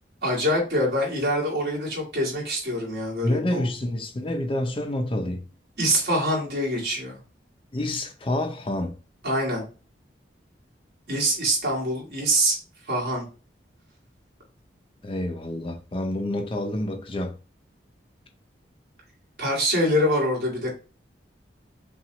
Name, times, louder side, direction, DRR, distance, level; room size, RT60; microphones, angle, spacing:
voice 1, 0.2-3.7 5.8-7.2 9.2-9.7 11.1-12.6 12.9-13.3 19.4-20.7, equal, 65° right, 2.0 m, -24 dB
voice 2, 3.2-5.4 7.7-8.9 15.0-17.4, left 1 dB, 30° left, 0.5 m, -28 dB
5.7 x 2.3 x 2.9 m
head